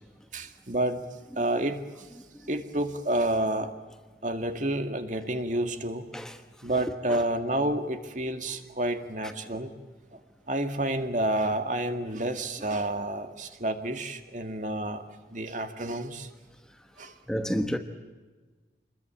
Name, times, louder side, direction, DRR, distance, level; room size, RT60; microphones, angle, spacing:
voice 1, 0.3-1.1 1.4-1.8 2.5-3.7 4.2-6.1 6.6-9.7 10.1-10.2 10.5-16.3 17.0-17.2, right 1 dB, 45° right, 2.1 m, -29 dB
voice 2, 17.3-17.8, equal, 5° left, 1.2 m, -30 dB
27.0 x 21.5 x 8.8 m
head